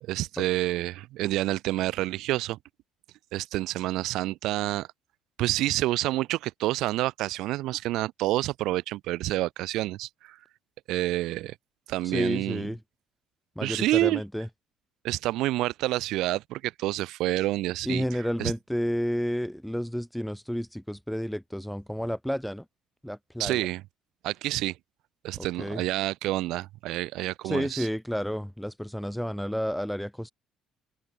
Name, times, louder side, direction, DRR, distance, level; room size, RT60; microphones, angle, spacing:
voice 1, 0.0-2.6 3.3-4.9 5.4-10.4 10.9-11.5 11.9-12.6 13.6-14.2 15.0-18.0 18.4-18.5 23.4-23.8 24.2-24.7 25.2-27.9, right 16 dB, 75° right, 1.2 m, -28 dB
voice 2, 12.0-12.8 13.6-14.5 17.8-22.6 23.0-23.7 25.4-25.8 27.4-30.3, equal, ahead, 0.8 m, -31 dB
open air
cardioid pair, 150°, 0 cm